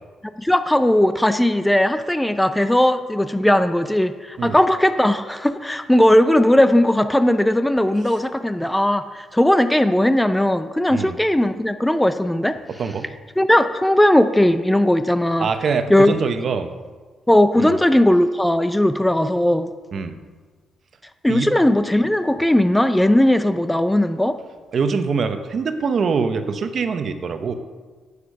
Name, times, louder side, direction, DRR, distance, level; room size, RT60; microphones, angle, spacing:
voice 1, 0.4-12.6 13.4-15.5 15.9-16.2 17.3-19.7 21.2-24.4, left 1 dB, 5° left, 10 dB, 0.6 m, -18 dB
voice 2, 12.7-13.1 15.4-16.7 17.6-17.7 19.9-20.2 21.3-21.5 24.7-27.5, right 5 dB, 50° right, 9 dB, 1.0 m, -23 dB
10.0 x 8.4 x 5.5 m, 1.4 s
cardioid pair, 90°, 0 cm